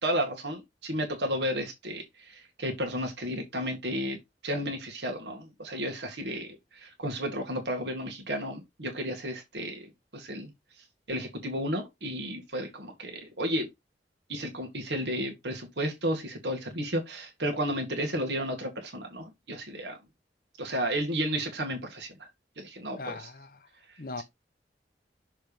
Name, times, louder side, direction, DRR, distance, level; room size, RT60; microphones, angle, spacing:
voice 1, 0.0-4.2 4.4-10.5 11.1-13.7 14.3-20.0 20.6-22.3 22.6-23.3, equal, 85° right, 1.7 m, -33 dB
voice 2, 23.0-23.7 24.0-24.2, left 3 dB, 55° left, 0.8 m, -39 dB
6.5 x 3.3 x 5.1 m
head